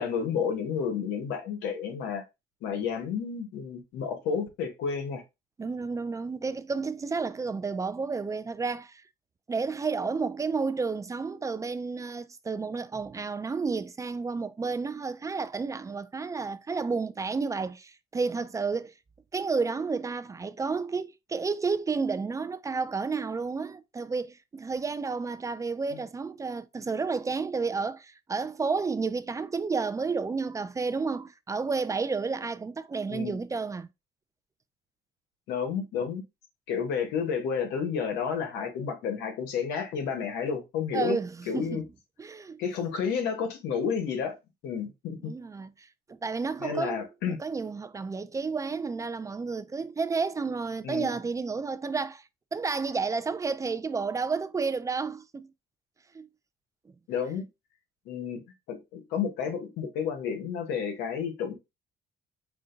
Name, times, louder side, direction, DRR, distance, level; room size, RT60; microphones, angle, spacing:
voice 1, 0.0-2.2 2.6-5.2 25.9-26.0 33.1-33.4 35.5-36.2 36.7-41.2 41.5-41.8 42.6-44.4 44.6-45.3 46.6-47.4 50.8-51.1 57.1-57.5 58.1-58.4 58.7-61.5, left 6 dB, 85° left, 1.2 m, -31 dB
voice 2, 5.6-9.0 9.5-18.9 19.3-33.9 40.9-41.8 42.2-42.6 45.2-47.0 47.3-52.2 52.5-55.5 56.1-56.3, right 4 dB, 20° right, 0.3 m, -31 dB
5.0 x 2.2 x 3.8 m
cardioid pair, 110°, 17 cm